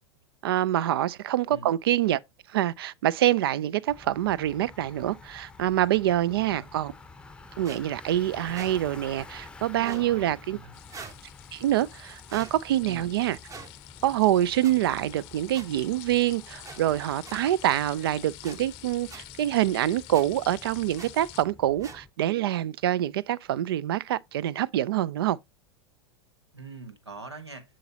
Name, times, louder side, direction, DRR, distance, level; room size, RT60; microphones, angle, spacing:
voice 1, 0.4-2.2 2.5-6.9 7.6-10.6 11.5-13.4 14.0-25.4, right 13 dB, 60° right, 0.4 m, -26 dB
Bicycle, 3.9-22.1, left 3 dB, 5° left, 0.7 m, -49 dB
voice 2, 6.3-6.7 9.9-10.8 12.8-13.1 26.5-27.6, right 3 dB, 90° right, 1.4 m, -43 dB
sound 1, 7.6-7.8 8.5-8.7 9.8-10.1 10.9-11.2 12.3-12.5 13.5-13.7 14.6-14.7 15.5-15.7 16.6-16.8 17.2-17.4 18.4-18.6 19.1-19.2 20.1-20.2 21.0-21.1 21.8-22.0, right 5 dB, 25° right, 0.9 m, -42 dB
sound 2, 10.7-21.4, left 19 dB, 45° left, 0.6 m, -48 dB
7.6 x 6.3 x 2.8 m
figure-of-eight pair, 90°, 14 cm